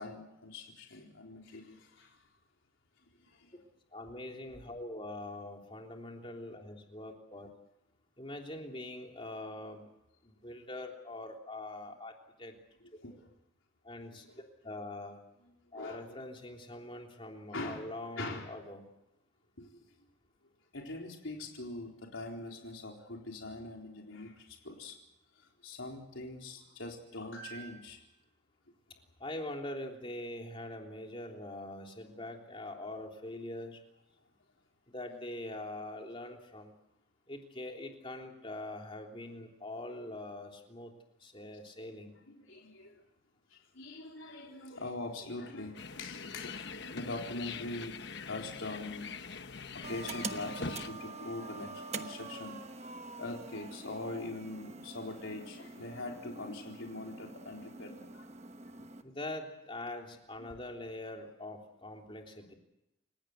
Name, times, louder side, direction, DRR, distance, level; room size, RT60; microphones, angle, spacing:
voice 1, 0.0-2.2 3.2-3.6 12.8-13.3 14.2-14.4 15.7-16.2 16.8-16.9 17.5-17.8 18.2-18.5 19.6-19.8 20.7-25.0 25.4-28.0 42.2-43.0 43.5-49.1 49.9-52.6 53.2-58.3 60.4-60.5, left 2 dB, 75° left, 1 dB, 4.1 m, -43 dB
voice 2, 3.9-7.5 8.2-9.9 10.2-12.1 12.4-12.5 13.8-14.2 14.6-15.2 15.7-18.8 29.2-33.8 34.9-36.7 37.3-40.9 41.2-42.1 59.0-62.5, left 1 dB, 25° left, 2 dB, 3.3 m, -43 dB
sound 1, 45.7-50.9, left 4 dB, 55° left, 1.1 m, -43 dB
sound 2, 49.8-59.0, right 3 dB, 30° right, 1.1 m, -45 dB
28.5 x 16.5 x 8.2 m, 0.87 s
head